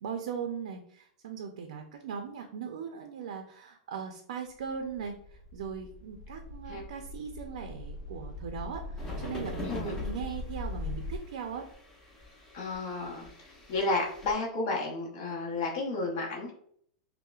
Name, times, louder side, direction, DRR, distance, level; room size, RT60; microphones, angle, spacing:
voice 1, 0.0-5.1 5.5-11.6, right 6 dB, 80° right, 4 dB, 0.5 m, -39 dB
sound 1, 4.6-11.2, left 2 dB, 85° left, 0.6 m, -41 dB
sound 2, 9.0-14.3, left 2 dB, 15° left, 0.7 m, -43 dB
voice 2, 9.6-9.9 12.5-16.5, left 3 dB, 50° left, -2 dB, 0.9 m, -32 dB
5.6 x 2.0 x 2.4 m, 0.65 s
supercardioid pair, 160°, 4 cm